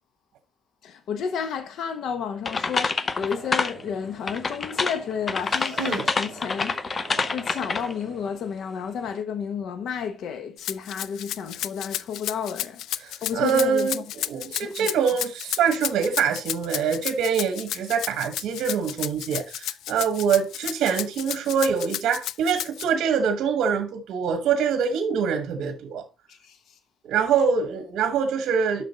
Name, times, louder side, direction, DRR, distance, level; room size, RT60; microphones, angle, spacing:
voice 1, 0.8-6.8 7.3-12.8 13.2-14.0 14.6-14.9 26.3-26.6, left 7 dB, 70° left, 1.1 m, -31 dB
sound 1, 2.5-3.8 4.3-8.0, left 4 dB, 30° left, 0.6 m, -27 dB
sound 2, 3.1-8.3, right 6 dB, 50° right, 2.5 m, -45 dB
Rattle (instrument), 10.6-22.8, left 12 dB, 85° left, 0.3 m, -32 dB
voice 2, 13.0-26.0 27.0-28.8, right 6 dB, 85° right, 1.1 m, -24 dB
7.5 x 6.0 x 4.0 m
cardioid pair, 135°, 0 cm